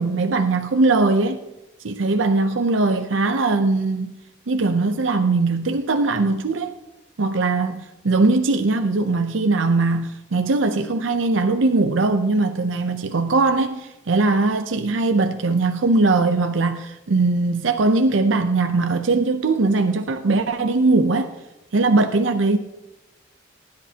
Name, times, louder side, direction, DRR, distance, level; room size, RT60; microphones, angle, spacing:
voice 1, 0.0-1.4 1.8-4.2 4.5-6.7 7.2-21.3 21.7-22.6, right 3 dB, 90° right, 0.6 m, -20 dB
20.0 x 10.5 x 2.9 m
head